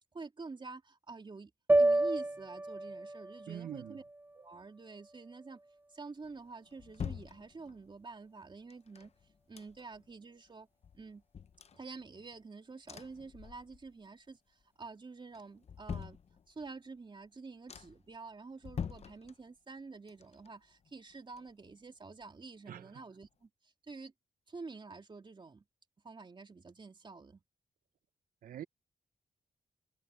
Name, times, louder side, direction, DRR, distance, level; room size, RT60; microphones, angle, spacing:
voice 1, 0.1-1.5 1.8-4.0 4.3-5.6 5.9-9.1 9.5-10.7 10.9-11.2 11.7-16.2 16.5-24.1 24.5-25.6 26.0-27.4, right 4 dB, 30° right, 3.1 m, -48 dB
sound 1, 1.7-6.0, right 2 dB, 15° right, 0.6 m, -32 dB
voice 2, 3.5-4.0 22.7-23.0 28.4-28.6, right 10 dB, 65° right, 0.5 m, -44 dB
sound 2, 6.2-8.0 8.7-10.1 10.5-10.6 10.8-12.4 12.9-14.0 14.4-14.9 15.3-16.8 17.2-17.3 17.7-18.2 18.6-19.8 20.1-21.9 22.2-22.3, left 7 dB, 45° left, 0.7 m, -46 dB
cardioid pair, 105°, 15 cm